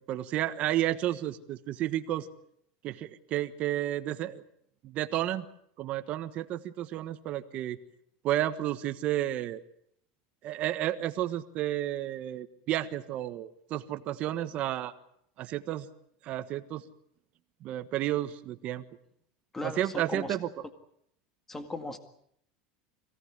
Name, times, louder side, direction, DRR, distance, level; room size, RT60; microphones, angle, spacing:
voice 1, 0.0-2.3 2.8-4.4 4.8-5.5 5.8-7.8 8.2-9.6 10.4-14.9 15.4-15.9 16.2-16.8 17.6-18.8 19.6-20.5, right 13 dB, 40° right, 9 dB, 1.4 m, -31 dB
voice 2, 19.5-20.4 21.5-22.0, left 2 dB, 10° left, 7 dB, 2.0 m, -37 dB
26.5 x 17.0 x 9.9 m, 0.71 s
supercardioid pair, 155°, 3 cm